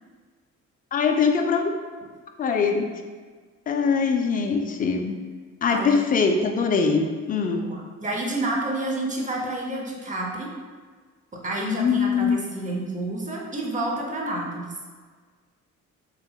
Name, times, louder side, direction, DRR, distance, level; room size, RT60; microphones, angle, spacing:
voice 1, 0.9-1.7 2.4-2.9 3.7-5.2 5.6-7.7 11.6-12.4, left 5 dB, 30° left, 4 dB, 0.3 m, -22 dB
voice 2, 5.7-6.2 7.5-10.5 11.3-14.8, right 2 dB, 25° right, -1 dB, 0.7 m, -29 dB
3.6 x 2.9 x 2.3 m, 1.5 s
cardioid pair, 90°, 30 cm